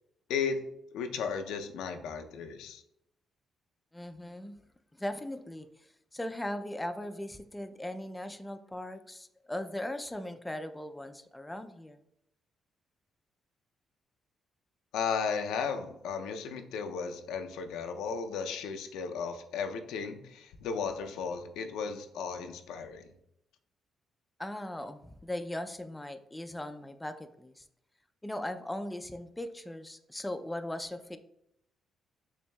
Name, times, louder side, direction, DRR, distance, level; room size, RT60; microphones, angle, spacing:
voice 1, 0.3-2.8 14.9-23.1, left 6 dB, 90° left, 6 dB, 0.4 m, -35 dB
voice 2, 3.9-4.6 5.0-5.7 6.1-12.0 24.4-27.6 28.2-31.2, left 1 dB, 10° left, 8 dB, 0.3 m, -39 dB
6.8 x 2.7 x 2.2 m, 0.79 s
cardioid pair, 90°, 0 cm